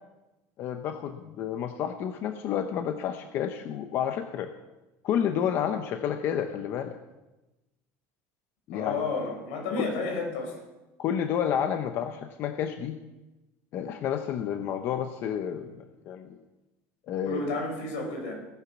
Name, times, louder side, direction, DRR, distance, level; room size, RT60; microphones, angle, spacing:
voice 1, 0.6-4.5 5.0-7.0 8.7-9.1 9.8-9.9 11.0-13.0 13.7-16.4 17.1-17.4, left 9 dB, 35° left, 7 dB, 0.8 m, -30 dB
voice 2, 8.7-10.6 17.2-18.3, left 3 dB, 80° left, 2 dB, 5.8 m, -31 dB
17.5 x 10.0 x 6.0 m, 1.0 s
cardioid pair, 180°, 7 cm